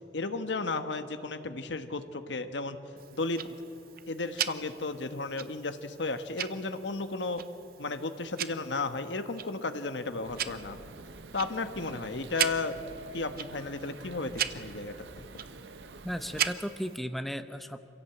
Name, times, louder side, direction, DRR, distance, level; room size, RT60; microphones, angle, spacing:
voice 1, 0.1-2.8 3.1-3.4 4.1-7.4 7.8-10.8 11.3-12.8 13.1-14.9, left 3 dB, 90° left, 9 dB, 1.2 m, -34 dB
Tick-tock, 3.0-17.0, right 10 dB, 55° right, 0.8 m, -39 dB
sound 1, 10.2-16.5, right 3 dB, 80° right, 0.9 m, -48 dB
voice 2, 16.0-17.8, equal, ahead, 9 dB, 0.8 m, -35 dB
26.5 x 16.5 x 7.9 m, 2.9 s
head